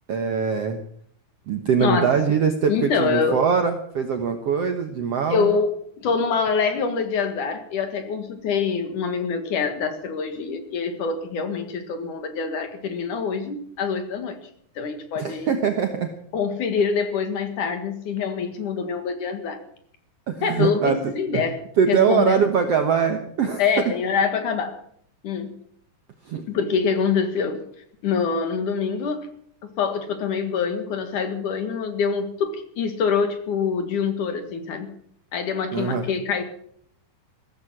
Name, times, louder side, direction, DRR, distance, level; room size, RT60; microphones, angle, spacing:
voice 1, 0.1-0.8 1.5-5.5 15.2-16.1 20.3-21.4 21.8-23.6 26.3-26.4 35.7-36.1, right 6 dB, 65° right, 6 dB, 1.6 m, -22 dB
voice 2, 1.8-2.1 2.7-3.4 5.3-14.4 14.8-15.6 16.3-19.6 20.4-21.6 21.9-22.4 23.6-24.8 25.2-25.5 26.5-27.6 28.0-29.3 29.6-34.9 35.3-36.4, left 5 dB, 60° left, 8 dB, 3.0 m, -25 dB
16.0 x 14.5 x 6.1 m, 0.65 s
omnidirectional pair, 4.4 m